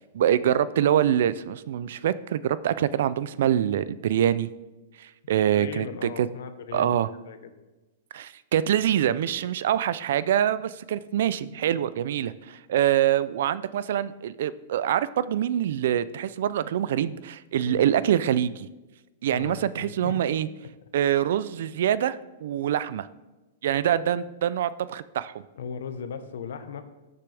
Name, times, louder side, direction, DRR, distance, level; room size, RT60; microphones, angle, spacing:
voice 1, 0.0-4.5 5.0-6.3 6.7-7.1 8.1-18.7 19.2-20.5 20.9-23.1 23.6-25.3, right 10 dB, 55° right, 17 dB, 0.4 m, -25 dB
voice 2, 5.2-7.0 7.2-7.5 17.7-17.9 19.3-20.2 23.8-23.9 25.6-26.8, left 7 dB, 70° left, 9 dB, 1.1 m, -38 dB
17.5 x 6.7 x 3.5 m, 1.1 s
supercardioid pair, 175°, 0 cm